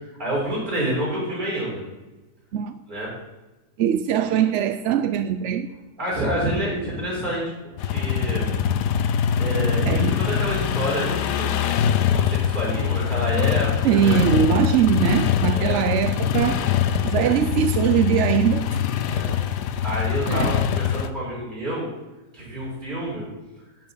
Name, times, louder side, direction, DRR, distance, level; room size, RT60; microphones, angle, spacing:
voice 1, 0.0-1.8 2.9-3.1 6.0-7.4 7.9-11.5 12.1-14.2 15.5-15.8 17.1-17.3 19.1-19.4 19.7-21.9 22.3-23.2, equal, 30° right, -6 dB, 4.4 m, -28 dB
voice 2, 3.8-5.7 9.8-10.1 13.8-16.6 17.0-18.6 19.0-19.1 20.3-20.5, right 9 dB, 65° right, 10 dB, 0.7 m, -21 dB
sound 1, 7.8-21.1, left 9 dB, 80° left, 1.3 m, -23 dB
9.4 x 6.3 x 8.3 m, 1.1 s
omnidirectional pair, 1.7 m